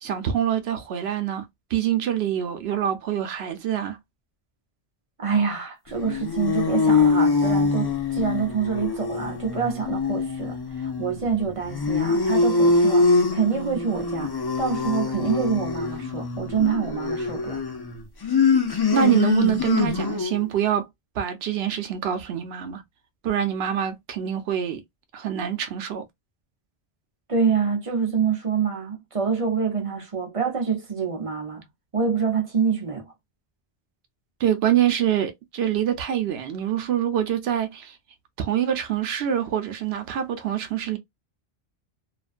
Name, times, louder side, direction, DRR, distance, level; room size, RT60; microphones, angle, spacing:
voice 1, 0.0-4.0 18.9-20.9 21.2-22.8 23.2-24.8 25.1-26.0 34.4-38.0 38.4-41.0, right 10 dB, 80° right, 0.9 m, -25 dB
voice 2, 5.2-17.6 27.3-31.6 31.9-33.0, right 6 dB, 35° right, 0.7 m, -26 dB
sound 1, 5.9-20.4, left 4 dB, 35° left, 0.4 m, -24 dB
2.5 x 2.2 x 2.4 m
omnidirectional pair, 1.0 m